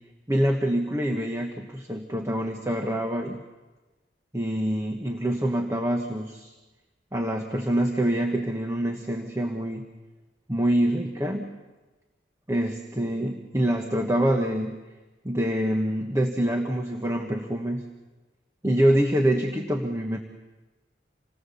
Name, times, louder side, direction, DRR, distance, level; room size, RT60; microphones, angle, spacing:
voice 1, 0.3-3.4 4.3-6.5 7.1-9.8 10.5-11.6 12.5-14.8 15.2-17.9 18.6-20.2, right 1 dB, 15° right, 3 dB, 1.2 m, -25 dB
27.5 x 19.0 x 7.1 m, 1.2 s
head